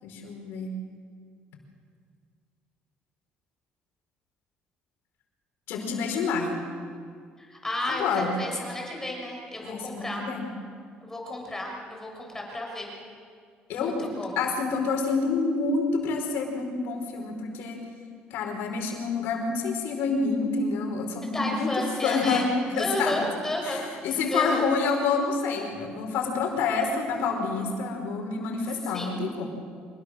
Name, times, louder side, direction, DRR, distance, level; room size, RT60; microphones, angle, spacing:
voice 1, 0.0-0.7 5.7-6.6 7.9-8.3 9.6-10.5 13.7-14.0 14.4-17.8 18.3-21.7 22.0-23.1 23.6-29.5, left 4 dB, 80° left, 2 dB, 5.1 m, -28 dB
voice 2, 7.4-10.2 11.0-12.9 13.7-14.4 21.2-22.5 22.7-24.7 28.9-29.2, left 1 dB, 15° left, 0 dB, 6.3 m, -32 dB
26.0 x 21.0 x 6.6 m, 2.1 s
cardioid pair, 95°, 4 cm